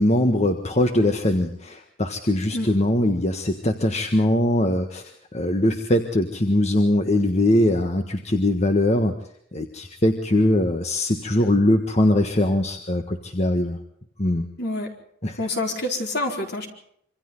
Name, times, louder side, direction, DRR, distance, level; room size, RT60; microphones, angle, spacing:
voice 1, 0.0-9.1 9.5-13.8 14.2-14.5 15.2-15.4, left 1 dB, 35° left, 5 dB, 1.5 m, -21 dB
voice 2, 14.6-14.9 15.4-16.7, left 2 dB, 60° left, 2 dB, 4.5 m, -27 dB
26.5 x 25.0 x 4.0 m, 0.68 s
head